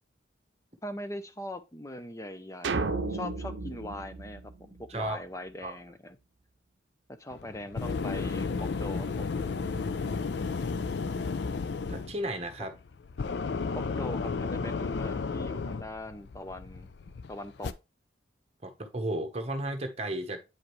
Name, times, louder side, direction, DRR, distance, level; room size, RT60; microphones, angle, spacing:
voice 1, 0.8-6.2 7.1-9.3 13.7-16.9 17.3-17.8, left 1 dB, 15° left, 0.6 m, -41 dB
sound 1, 2.6-5.1, right 3 dB, 75° right, 0.6 m, -33 dB
sound 2, 7.3-17.7, left 4 dB, 60° left, 0.4 m, -33 dB
voice 2, 11.9-12.7 18.6-20.4, right 1 dB, 35° right, 1.0 m, -33 dB
8.6 x 5.0 x 3.1 m
head